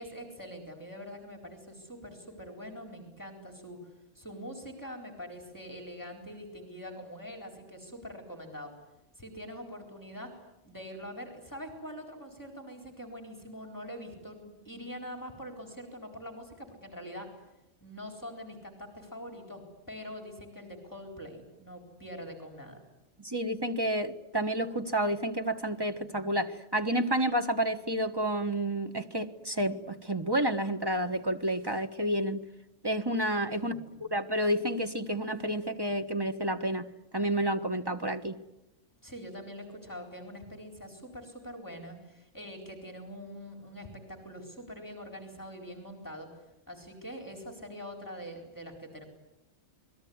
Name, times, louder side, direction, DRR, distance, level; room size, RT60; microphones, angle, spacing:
voice 1, 0.0-8.7 9.2-10.4 10.6-17.3 17.8-22.8 33.6-34.0 39.0-46.3 46.7-49.0, equal, 15° left, 3 dB, 4.3 m, -44 dB
voice 2, 23.2-32.4 32.8-33.7 34.1-36.9 37.1-38.4, right 1 dB, 20° right, 7 dB, 1.4 m, -30 dB
28.5 x 21.0 x 9.6 m, 0.92 s
omnidirectional pair, 1.3 m